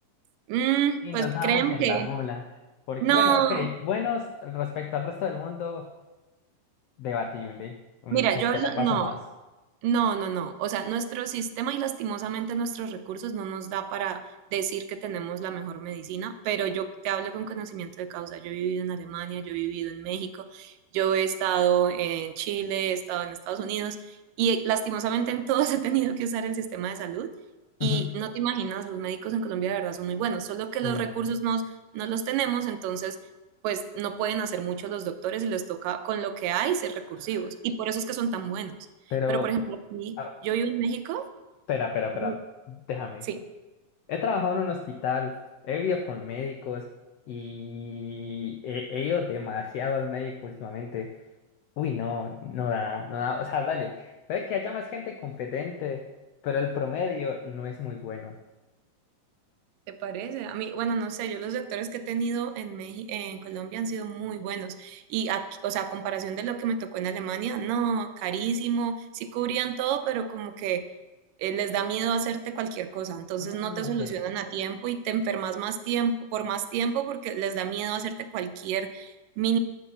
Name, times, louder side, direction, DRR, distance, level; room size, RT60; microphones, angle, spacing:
voice 1, 0.5-2.1 3.0-3.7 8.1-9.1 9.8-27.3 27.8-33.2 33.6-38.8 39.3-40.2 40.4-41.3 42.2-42.3 43.3-43.4 59.9-70.8 71.4-79.6, right 8 dB, 85° right, 9 dB, 2.3 m, -29 dB
voice 2, 1.0-2.4 2.9-5.9 7.0-7.8 8.0-8.3 8.5-9.2 27.8-28.1 30.8-31.1 39.1-39.5 40.2-40.4 41.7-42.4 42.7-43.3 44.1-45.4 45.6-46.9 47.3-51.1 51.8-56.1 56.4-58.4 73.4-74.1, left 6 dB, 85° left, 4 dB, 1.4 m, -31 dB
11.0 x 6.8 x 7.2 m, 1.1 s
omnidirectional pair, 3.9 m